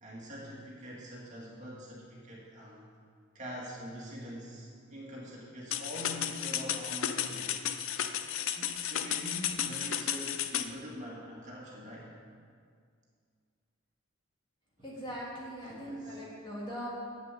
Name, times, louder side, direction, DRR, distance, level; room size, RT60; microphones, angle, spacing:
voice 1, 0.0-2.9 3.3-7.6 8.2-12.1 15.6-16.2, equal, 35° right, -5 dB, 2.1 m, -44 dB
sound 1, 5.7-10.7, left 10 dB, 75° left, 0.5 m, -33 dB
voice 2, 14.8-16.9, equal, 25° left, -6 dB, 2.7 m, -40 dB
7.9 x 7.4 x 8.2 m, 2.2 s
head